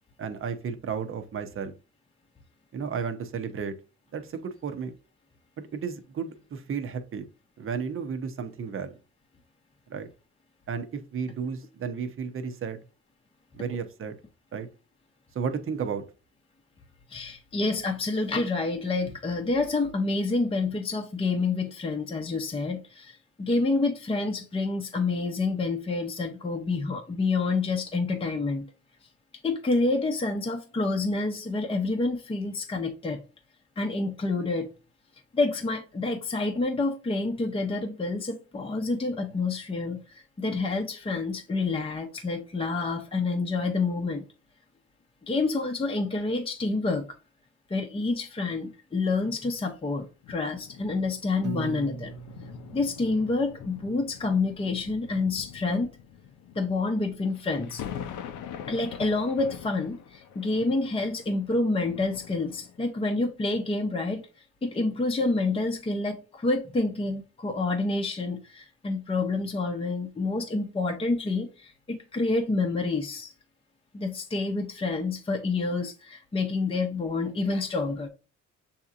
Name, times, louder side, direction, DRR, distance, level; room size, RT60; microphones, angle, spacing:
voice 1, 0.2-1.7 2.7-3.7 4.1-4.9 5.7-7.3 7.6-9.0 9.9-10.1 10.7-12.8 13.5-14.1 14.5-14.7 15.3-16.0, right 6 dB, 45° right, 0.8 m, -33 dB
voice 2, 17.1-28.6 29.4-33.2 33.8-34.7 35.3-44.2 45.3-47.1 47.7-52.1 52.7-55.9 56.5-57.8 58.7-64.2 64.6-73.3 73.9-78.1, left 3 dB, 20° left, 0.7 m, -28 dB
sound 1, 50.2-63.0 63.7-63.9, left 9 dB, 90° left, 0.6 m, -44 dB
Piano, 51.4-53.6, right 6 dB, 75° right, 0.8 m, -39 dB
6.8 x 2.8 x 2.5 m
cardioid pair, 90°, 30 cm